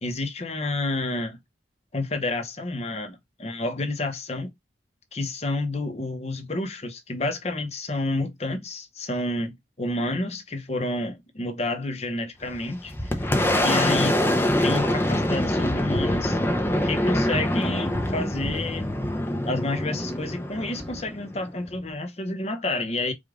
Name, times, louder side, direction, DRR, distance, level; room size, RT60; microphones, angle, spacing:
voice 1, 0.0-1.4 1.9-4.5 5.1-13.3 13.6-16.4 16.8-18.9 19.4-23.1, left 2 dB, 35° left, 0.9 m, -30 dB
Boom, 12.4-21.8, left 1 dB, 10° left, 0.6 m, -25 dB
4.9 x 2.4 x 3.6 m
head